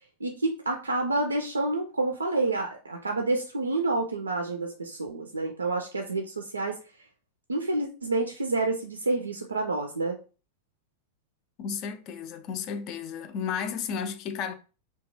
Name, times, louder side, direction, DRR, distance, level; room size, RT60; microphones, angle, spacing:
voice 1, 0.2-6.8 7.5-10.2, right 2 dB, 75° right, 0.3 m, -28 dB
voice 2, 11.6-14.5, left 7 dB, 40° left, 0.4 m, -33 dB
2.8 x 2.2 x 2.9 m
figure-of-eight pair, 90°, 0 cm